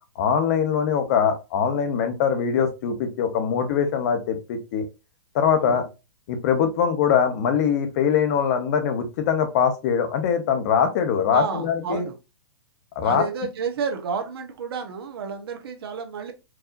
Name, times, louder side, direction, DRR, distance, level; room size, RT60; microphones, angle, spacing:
voice 1, 0.2-4.8 5.3-5.8 6.3-12.0 13.0-13.3, left 7 dB, 40° left, 1.0 m, -22 dB
voice 2, 11.3-12.2 13.0-16.3, right 6 dB, 65° right, 1.0 m, -31 dB
4.6 x 2.7 x 2.6 m
hypercardioid pair, 160°, 14 cm